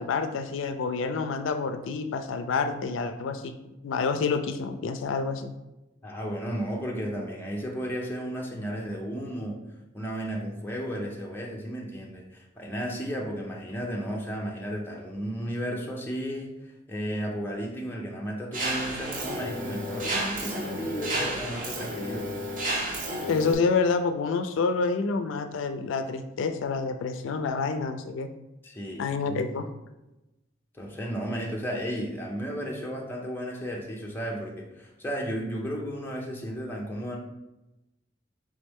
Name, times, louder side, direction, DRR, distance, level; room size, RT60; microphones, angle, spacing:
voice 1, 0.0-3.5 3.8-5.5 23.3-28.3 29.0-29.7, left 4 dB, 80° left, 8 dB, 0.3 m, -28 dB
voice 2, 6.0-9.6 9.9-22.4 28.6-29.6 30.7-37.2, equal, 10° left, -2 dB, 0.6 m, -34 dB
Mechanisms, 18.5-23.5, right 1 dB, 45° right, 0.7 m, -32 dB
4.1 x 3.4 x 3.5 m, 0.98 s
head